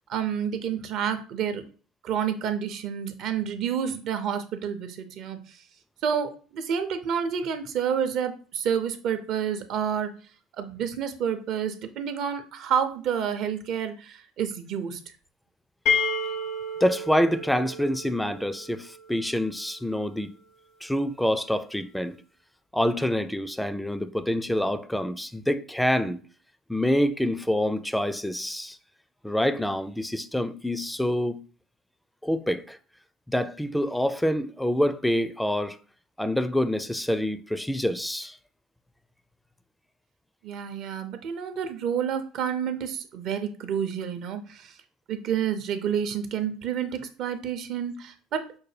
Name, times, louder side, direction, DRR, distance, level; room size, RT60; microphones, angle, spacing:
voice 1, 0.1-1.6 2.0-5.4 6.0-10.1 10.6-15.0 40.4-44.7 45.1-48.4, right 8 dB, 60° right, 0.6 m, -29 dB
sound 1, 15.9-19.6, left 3 dB, 65° left, 0.7 m, -30 dB
voice 2, 16.8-20.3 20.8-22.2 22.7-26.2 26.7-28.8 29.2-31.4 32.2-32.8 33.3-35.8 36.2-38.4, equal, 5° left, 0.4 m, -26 dB
5.3 x 2.2 x 3.3 m
hypercardioid pair, 65°, 0 cm